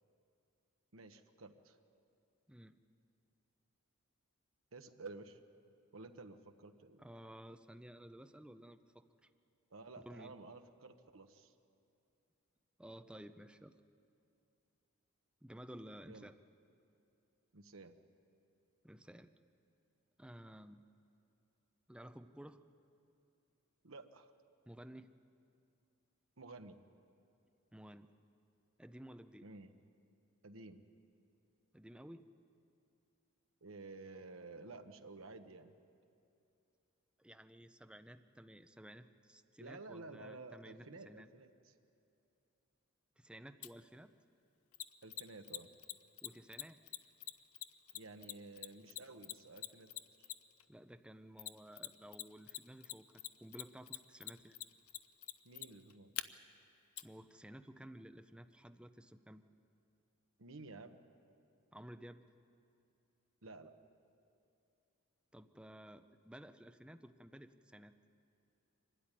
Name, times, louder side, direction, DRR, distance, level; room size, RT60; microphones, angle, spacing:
voice 1, 0.9-1.8 4.7-5.4 5.9-7.0 9.7-11.5 16.1-16.3 17.5-18.0 23.8-24.3 26.4-26.8 29.4-29.7 30.4-30.8 33.6-35.7 39.6-41.7 45.0-45.7 47.9-49.9 50.2-50.3 55.4-56.1 60.4-61.0 63.4-63.7, right 3 dB, 65° right, 6 dB, 1.0 m, -52 dB
voice 2, 2.5-2.8 7.0-9.3 10.0-10.3 12.8-13.7 15.4-16.4 18.8-19.3 20.2-20.8 21.9-22.6 24.7-25.1 27.7-28.1 28.8-29.5 31.7-32.3 37.2-41.3 43.2-44.1 46.2-46.8 50.7-54.6 57.0-59.4 61.7-62.2 65.3-67.9, equal, 5° right, 8 dB, 0.5 m, -54 dB
Mechanisms, 43.6-43.7 44.7-50.6 51.4-52.2 52.5-56.2 57.0-57.1, left 14 dB, 85° left, 0.6 m, -44 dB
24.0 x 12.5 x 10.0 m, 2.6 s
head